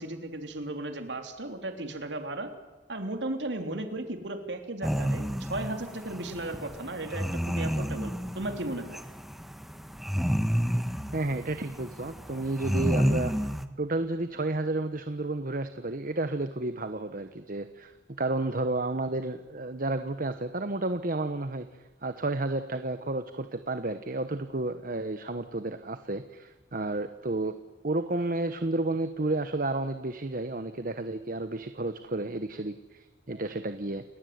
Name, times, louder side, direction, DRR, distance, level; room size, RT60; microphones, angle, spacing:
voice 1, 0.0-2.5 2.9-9.0, right 2 dB, 90° right, 6 dB, 3.3 m, -35 dB
sound 1, 4.8-13.7, equal, ahead, 1.3 m, -30 dB
voice 2, 11.1-13.3 13.8-17.9 18.2-21.7 22.0-27.6 27.8-34.0, right 2 dB, 50° right, 10 dB, 1.2 m, -31 dB
30.0 x 19.5 x 9.5 m, 1.2 s
head